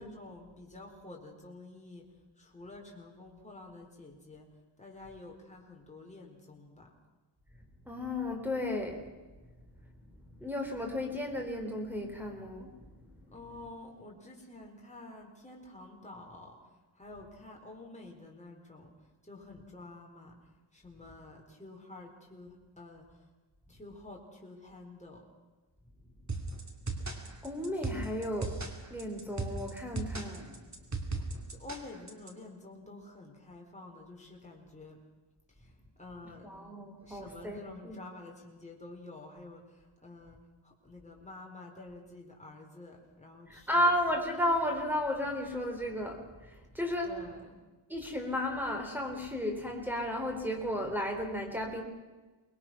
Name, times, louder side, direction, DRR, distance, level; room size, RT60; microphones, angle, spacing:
voice 1, 0.0-2.1 2.4-4.5 4.8-6.9 13.3-18.9 19.2-20.4 20.7-23.3 23.7-25.2 31.5-35.0 35.5-35.7 36.0-36.5 37.0-43.9 47.0-47.6, left 2 dB, 15° left, -1 dB, 4.2 m, -49 dB
voice 2, 7.8-9.4 10.0-13.1 27.4-30.6 36.4-38.0 43.5-47.1 47.9-51.8, left 1 dB, 5° right, 2 dB, 3.7 m, -34 dB
sound 1, 26.3-32.3, right 3 dB, 35° right, 2.6 m, -37 dB
25.0 x 21.0 x 5.9 m, 1.2 s
wide cardioid pair, 115°, 46 cm